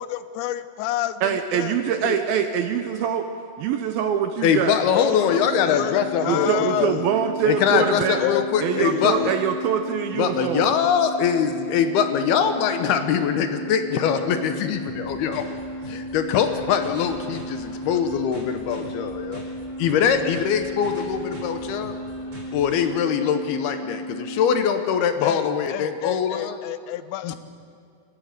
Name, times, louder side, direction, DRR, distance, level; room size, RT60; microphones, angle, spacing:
voice 1, 0.0-1.7 2.0-2.2 4.9-6.9 7.7-8.4 8.7-9.3 25.2-27.4, left 13 dB, 85° left, 14 dB, 3.0 m, -29 dB
voice 2, 1.2-3.3 3.6-4.8 6.2-8.2 8.6-10.7, right 8 dB, 75° right, 7 dB, 2.3 m, -24 dB
voice 3, 4.4-6.5 6.8-7.0 7.5-9.4 10.2-15.4 15.9-19.4 19.8-22.0 22.5-26.6 27.2-27.4, left 7 dB, 70° left, 8 dB, 2.8 m, -23 dB
sound 1, 5.2-24.7, equal, 50° right, 9.1 m, -35 dB
sound 2, 14.8-22.8, left 1 dB, 25° right, 5.9 m, -44 dB
28.5 x 15.0 x 6.6 m, 2.4 s
omnidirectional pair, 5.0 m